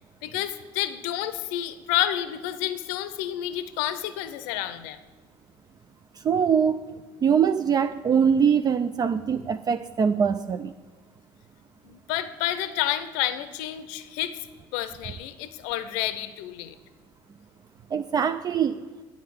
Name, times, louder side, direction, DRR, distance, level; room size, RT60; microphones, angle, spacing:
voice 1, 0.2-5.0 11.8-14.4 14.7-16.7, left 12 dB, 75° left, 12 dB, 0.6 m, -29 dB
voice 2, 6.2-6.8 7.2-10.7 17.9-18.8, right 7 dB, 35° right, 10 dB, 0.4 m, -23 dB
8.3 x 5.3 x 7.7 m, 1.3 s
hypercardioid pair, 75°, 12 cm